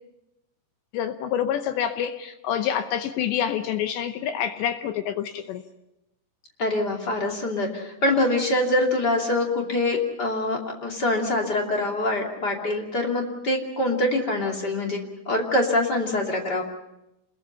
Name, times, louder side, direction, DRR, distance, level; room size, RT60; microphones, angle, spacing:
voice 1, 0.9-5.6, left 9 dB, 75° left, 8 dB, 2.7 m, -27 dB
voice 2, 6.6-15.0 15.3-16.6, left 2 dB, 30° left, 0 dB, 2.1 m, -24 dB
29.0 x 21.5 x 5.6 m, 0.90 s
omnidirectional pair, 5.9 m